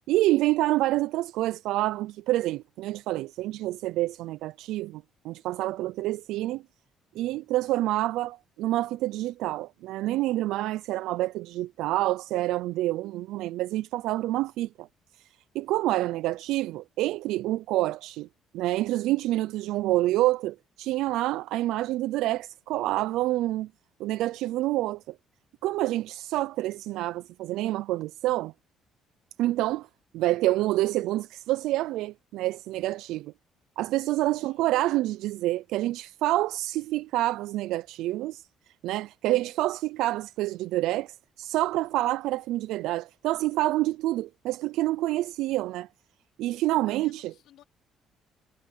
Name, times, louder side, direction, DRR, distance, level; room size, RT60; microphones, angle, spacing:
voice 1, 0.1-6.6 7.2-14.9 15.2-15.3 15.5-18.3 18.5-23.7 24.0-25.1 25.6-28.5 29.4-29.9 30.1-33.3 33.8-38.5 38.8-45.9 46.4-47.3, right 16 dB, 90° right, 0.3 m, -27 dB
voice 2, 34.2-34.7 46.9-47.6, left 12 dB, 80° left, 2.6 m, -57 dB
cardioid pair, 120°, 0 cm